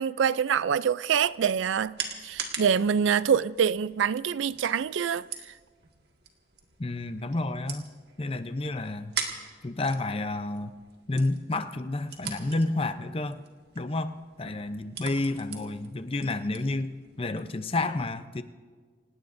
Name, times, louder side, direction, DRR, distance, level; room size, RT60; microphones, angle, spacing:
voice 1, 0.0-5.3, right 7 dB, 75° right, 0.4 m, -25 dB
sound 1, 1.1-17.5, right 6 dB, 55° right, 1.9 m, -43 dB
voice 2, 6.8-7.9 8.2-9.2 9.6-10.8 11.1-13.4 13.7-18.4, left 2 dB, 30° left, 0.6 m, -30 dB
28.5 x 18.0 x 2.6 m
head